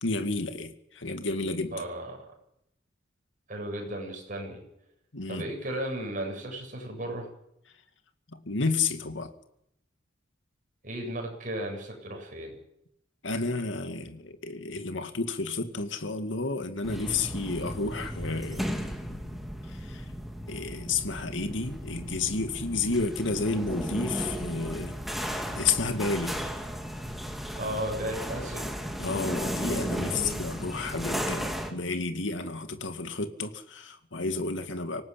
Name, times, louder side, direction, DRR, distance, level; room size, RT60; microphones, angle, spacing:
voice 1, 0.0-1.8 5.1-5.5 8.3-9.3 13.2-19.4 19.7-20.1 20.5-26.4 29.0-35.0, left 3 dB, 80° left, 8 dB, 2.2 m, -31 dB
voice 2, 1.7-2.3 3.5-4.6 5.3-7.3 10.8-12.5 27.6-28.7 30.0-30.4, right 1 dB, 45° right, 1 dB, 7.9 m, -35 dB
sound 1, 16.8-31.7, equal, ahead, 2.9 m, -35 dB
26.0 x 18.0 x 8.7 m, 0.78 s
head